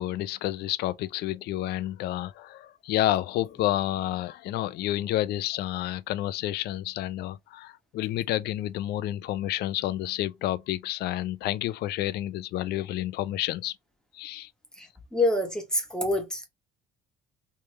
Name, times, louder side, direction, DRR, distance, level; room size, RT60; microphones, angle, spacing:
voice 1, 0.0-13.7 14.1-14.5, left 14 dB, 75° left, 0.4 m, -30 dB
voice 2, 14.8-16.5, left 1 dB, 5° left, 1.4 m, -27 dB
3.3 x 3.2 x 3.1 m
cardioid pair, 110°, 17 cm